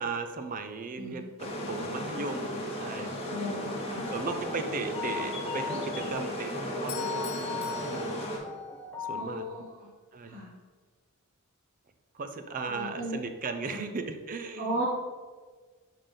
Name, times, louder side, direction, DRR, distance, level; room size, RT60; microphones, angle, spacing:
voice 1, 0.0-3.1 4.1-8.2 9.1-9.5 10.1-10.4 12.1-14.8, right 4 dB, 40° right, 7 dB, 0.5 m, -37 dB
sound 1, 1.4-8.4, equal, 25° left, 1.1 m, -35 dB
voice 2, 3.2-4.1 9.1-9.9 10.3-10.5 12.7-13.2 13.7-13.8 14.6-14.8, right 1 dB, 55° right, -7 dB, 1.3 m, -36 dB
sound 2, 4.0-9.2, left 6 dB, 10° left, 0.6 m, -39 dB
Bell / Doorbell, 6.9-9.0, left 8 dB, 80° left, 0.8 m, -44 dB
5.7 x 3.7 x 5.2 m, 1.4 s
head